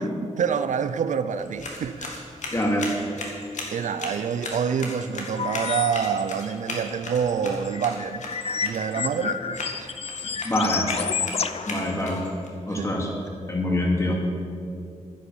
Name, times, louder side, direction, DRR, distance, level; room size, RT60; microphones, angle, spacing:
voice 1, 0.2-2.3 3.7-8.2 8.6-10.0 10.3-10.4 12.7-13.0, right 7 dB, 85° right, 11 dB, 0.6 m, -27 dB
sound 1, 1.3-12.5, left 2 dB, 80° left, 2.2 m, -37 dB
voice 2, 2.5-2.9 10.4-10.9 11.7-12.2 12.7-13.1 13.5-14.2, left 1 dB, 25° left, -1 dB, 2.6 m, -24 dB
sound 2, 5.4-6.1 6.4-6.5 7.4-12.3, left 6 dB, 55° left, 0.6 m, -30 dB
10.5 x 10.0 x 7.1 m, 2.4 s
wide cardioid pair, 110°, 12 cm